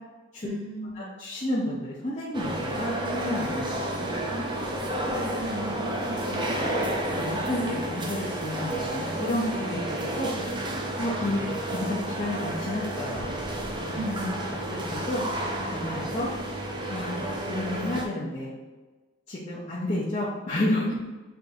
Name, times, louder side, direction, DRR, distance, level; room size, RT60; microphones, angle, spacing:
voice 1, 0.4-1.1 4.3-6.9 14.0-14.4 20.9-21.0, right 1 dB, 80° right, 1 dB, 0.9 m, -36 dB
voice 2, 0.9-3.8 6.5-6.8 7.1-10.3 11.0-11.4 11.7-13.3 13.8-14.0 14.7-15.2 15.7-16.3 16.9-17.1 17.5-18.6 19.3-21.0, left 1 dB, 30° left, -6 dB, 0.6 m, -31 dB
sound 1, 2.3-18.0, right 1 dB, 20° right, 0.5 m, -31 dB
5.6 x 3.5 x 2.6 m, 1.2 s
head